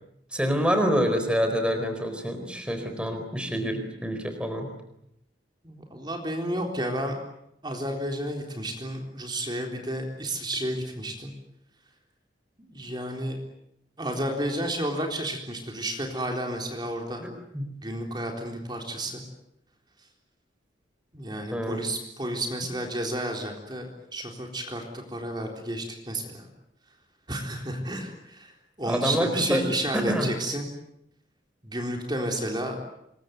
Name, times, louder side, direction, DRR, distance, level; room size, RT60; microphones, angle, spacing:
voice 1, 0.3-4.7 17.2-17.7 21.5-21.8 28.8-29.6 29.9-30.3, equal, 5° right, 6 dB, 4.2 m, -27 dB
voice 2, 5.6-7.2 7.6-11.3 12.6-13.4 14.0-17.2 17.8-19.2 21.1-26.5 27.3-30.7 31.6-32.8, right 1 dB, 25° right, 2 dB, 3.9 m, -31 dB
27.0 x 22.5 x 9.4 m, 0.80 s
head